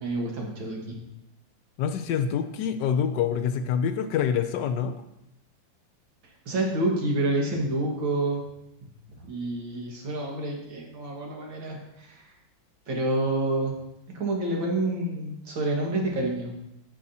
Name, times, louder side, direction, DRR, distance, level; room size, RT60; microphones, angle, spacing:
voice 1, 0.0-1.0 6.5-8.4 9.3-12.3 12.9-13.8 14.1-16.6, right 2 dB, 90° right, -1 dB, 2.4 m, -28 dB
voice 2, 1.8-5.0, left 7 dB, 75° left, 9 dB, 1.1 m, -26 dB
13.0 x 6.1 x 2.8 m, 0.85 s
omnidirectional pair, 2.1 m